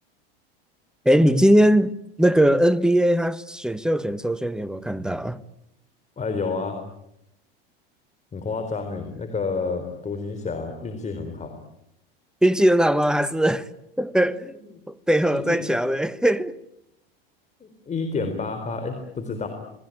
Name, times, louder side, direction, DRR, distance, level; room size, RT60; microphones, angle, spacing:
voice 1, 1.0-1.9 2.2-5.4 12.4-13.7 14.0-14.5 14.9-16.6, right 1 dB, ahead, 1.2 m, -20 dB
voice 2, 6.2-6.8 8.3-11.5 15.3-15.6 17.6-19.5, left 4 dB, 25° left, 4.1 m, -29 dB
28.0 x 21.0 x 9.2 m
hypercardioid pair, 105°, 30 cm